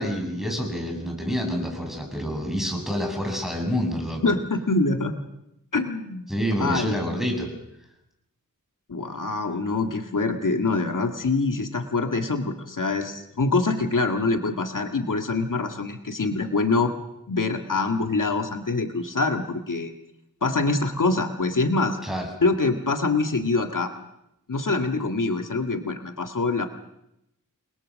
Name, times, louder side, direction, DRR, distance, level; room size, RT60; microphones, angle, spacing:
voice 1, 0.0-4.3 6.3-7.5 22.0-22.3, equal, ahead, 2 dB, 7.5 m, -27 dB
voice 2, 4.2-5.1 5.7-6.3 6.6-7.0 8.9-16.9 17.3-19.9 20.4-22.0 22.4-23.9 24.5-26.7, left 3 dB, 70° left, 5 dB, 1.9 m, -25 dB
29.5 x 22.0 x 6.4 m, 0.84 s
wide cardioid pair, 60°, 32 cm